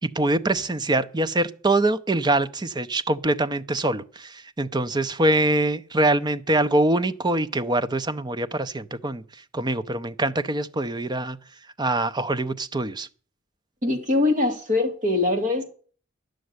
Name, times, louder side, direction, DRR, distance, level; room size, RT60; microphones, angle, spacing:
voice 1, 0.0-9.2 9.5-11.4 11.8-13.1, right 2 dB, 20° right, 0.6 m, -24 dB
voice 2, 13.8-15.6, left 2 dB, 40° right, 2.4 m, -22 dB
11.5 x 6.5 x 9.5 m
head